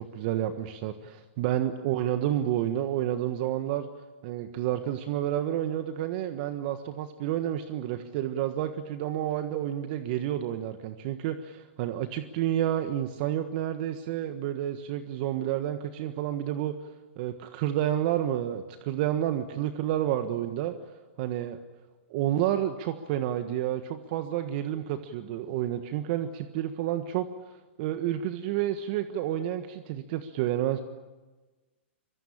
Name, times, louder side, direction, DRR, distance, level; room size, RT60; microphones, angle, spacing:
voice 1, 0.0-3.9 4.2-16.7 17.2-20.7 21.2-21.6 22.1-27.3 27.8-30.8, right 12 dB, 50° right, 9 dB, 1.4 m, -30 dB
24.5 x 23.0 x 8.8 m, 1.2 s
hypercardioid pair, 120°, 7 cm